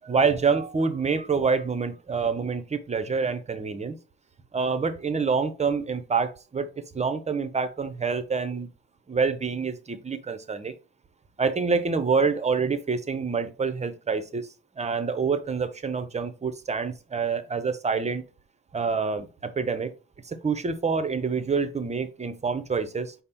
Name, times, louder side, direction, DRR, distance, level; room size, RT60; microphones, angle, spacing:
voice 1, 0.0-4.0 4.5-6.7 6.9-8.7 9.1-10.7 11.4-14.5 14.8-18.2 18.7-19.9 20.2-23.1, right 5 dB, 20° right, 10 dB, 0.6 m, -27 dB
5.1 x 2.0 x 4.3 m, 0.34 s
cardioid pair, 90°, 30 cm